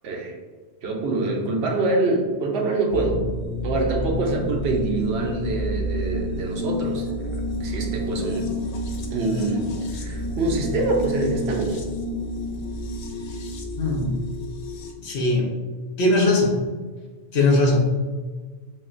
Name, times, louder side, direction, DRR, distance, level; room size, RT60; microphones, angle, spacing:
voice 1, 0.0-0.3 0.8-3.2 3.6-8.5 9.1-11.8, right 2 dB, 75° right, 1 dB, 0.9 m, -25 dB
sound 1, 2.9-14.9, equal, 55° left, 0.4 m, -29 dB
voice 2, 13.8-14.1 15.0-15.5 16.0-16.5 17.3-17.8, left 2 dB, 75° left, 0 dB, 1.0 m, -19 dB
5.6 x 2.1 x 2.5 m, 1.4 s
omnidirectional pair, 1.1 m